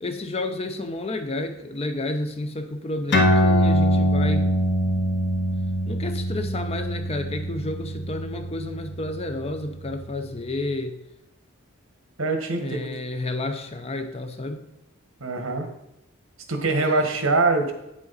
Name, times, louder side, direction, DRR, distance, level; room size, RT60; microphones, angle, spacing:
voice 1, 0.0-4.5 5.9-11.0 12.6-14.6, left 2 dB, 30° left, 7 dB, 0.6 m, -30 dB
sound 1, 3.1-10.0, equal, 55° left, 1.4 m, -23 dB
voice 2, 12.2-12.9 15.2-15.7 16.5-17.7, right 3 dB, 85° right, 5 dB, 1.3 m, -23 dB
8.7 x 7.4 x 4.0 m, 0.86 s
head